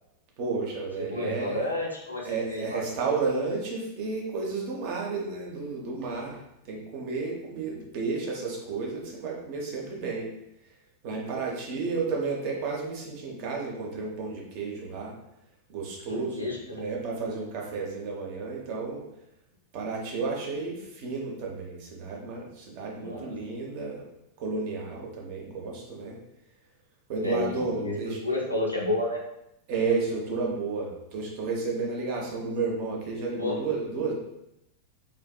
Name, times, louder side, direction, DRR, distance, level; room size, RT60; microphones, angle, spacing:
voice 1, 0.4-1.6 2.3-6.4 6.6-10.3 11.0-15.1 15.7-19.0 19.7-24.0 24.4-26.2 27.1-28.2 29.7-34.1, right 4 dB, 45° right, -1 dB, 0.6 m, -32 dB
voice 2, 1.1-2.8 16.1-16.6 23.0-23.3 27.2-29.2 33.4-33.6, left 2 dB, 85° left, -2 dB, 0.5 m, -31 dB
2.5 x 2.3 x 2.2 m, 0.84 s
figure-of-eight pair, 90°, 0 cm